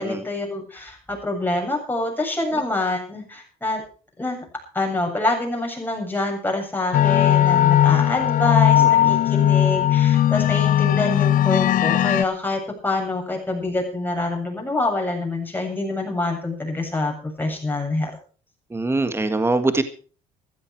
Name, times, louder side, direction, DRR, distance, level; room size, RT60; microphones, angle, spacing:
voice 1, 0.0-3.8 4.2-4.4 4.7-18.1, left 2 dB, 10° left, 2 dB, 7.7 m, -26 dB
sound 1, 6.9-12.2, left 11 dB, 55° left, 0.6 m, -18 dB
voice 2, 8.8-9.2 18.7-19.8, right 2 dB, 15° right, 9 dB, 1.7 m, -23 dB
15.5 x 14.5 x 4.7 m, 0.40 s
cardioid pair, 110°, 17 cm